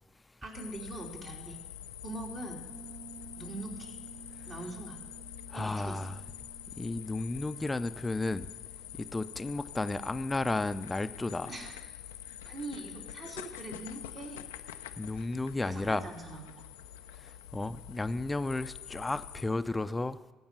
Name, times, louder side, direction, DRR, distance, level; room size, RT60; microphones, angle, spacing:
voice 1, 0.4-1.6 2.0-2.6 3.4-4.0 4.5-5.0 5.5-6.1 11.5-11.8 12.4-14.4 15.6-16.4, right 2 dB, 50° right, 3.0 m, -42 dB
sound 1, 0.5-19.4, left 11 dB, 90° left, 0.4 m, -46 dB
Piano, 2.7-11.2, right 6 dB, 20° right, 1.5 m, -54 dB
voice 2, 5.5-6.2 6.8-8.5 8.9-11.5 15.0-16.1 17.5-20.2, left 2 dB, 20° left, 0.5 m, -33 dB
15.5 x 5.5 x 7.5 m
hypercardioid pair, 60°, 0 cm